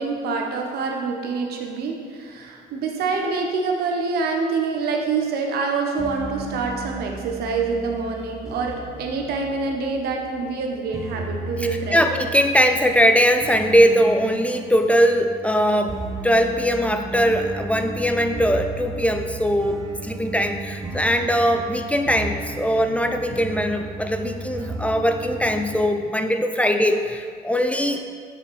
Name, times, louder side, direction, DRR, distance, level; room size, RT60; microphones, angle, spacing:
voice 1, 0.0-12.0, right 4 dB, 70° right, 2 dB, 1.0 m, -26 dB
sound 1, 6.0-25.8, right 2 dB, 20° right, 0.9 m, -35 dB
voice 2, 11.6-28.0, equal, 10° left, 6 dB, 0.4 m, -21 dB
6.4 x 6.1 x 4.7 m, 2.1 s
cardioid pair, 110°, 17 cm